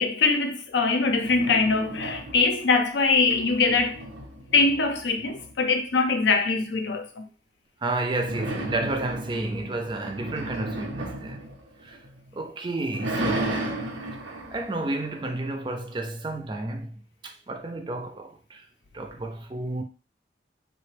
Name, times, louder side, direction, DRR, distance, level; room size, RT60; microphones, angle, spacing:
voice 1, 0.0-4.0 4.5-7.2, left 4 dB, 75° left, 0.5 m, -23 dB
sound 1, 1.0-2.7 3.1-5.8 8.1-12.3 12.7-15.8, right 1 dB, 80° right, 0.8 m, -34 dB
voice 2, 7.8-11.4 11.8-12.0 12.3-13.7 14.5-18.6 18.9-19.8, right 2 dB, 25° right, 0.4 m, -31 dB
3.3 x 2.1 x 3.2 m
head